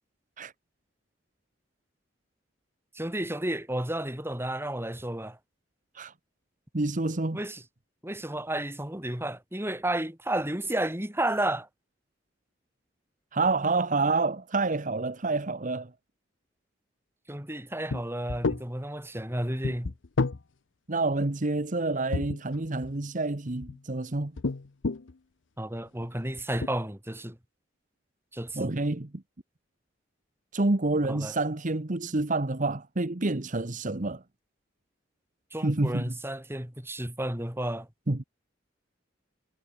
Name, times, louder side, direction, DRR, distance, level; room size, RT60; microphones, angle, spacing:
voice 1, 2.9-5.4 7.3-7.6 8.0-11.7 17.3-19.9 25.6-27.4 28.3-28.7 31.0-31.4 35.5-37.9, right 1 dB, 15° right, 4.6 m, -32 dB
voice 2, 6.7-7.4 13.3-15.9 20.9-24.3 28.5-29.2 30.5-34.2 35.6-36.1 38.1-38.2, right 2 dB, 45° right, 1.2 m, -28 dB
sound 1, 17.9-18.0 18.3-18.6 19.6-20.4 22.1-22.9 23.5-23.8 24.4-25.1 25.9-26.0 26.4-26.7, left 3 dB, 85° left, 0.8 m, -30 dB
head